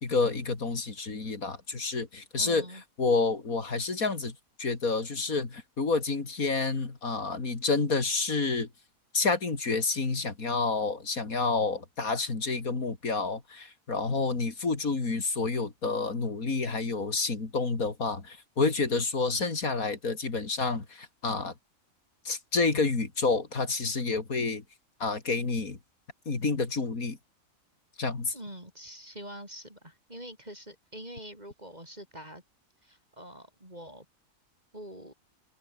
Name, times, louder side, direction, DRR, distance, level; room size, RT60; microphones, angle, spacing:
voice 1, 0.0-2.6 3.0-8.7 9.1-21.5 22.3-24.6 25.0-25.8 26.3-27.2 28.0-28.4, left 4 dB, 90° left, 3.6 m, -29 dB
voice 2, 2.4-2.8 28.3-32.4 32.8-34.1 34.7-35.1, equal, 30° right, 8.2 m, -45 dB
omnidirectional pair, 1.4 m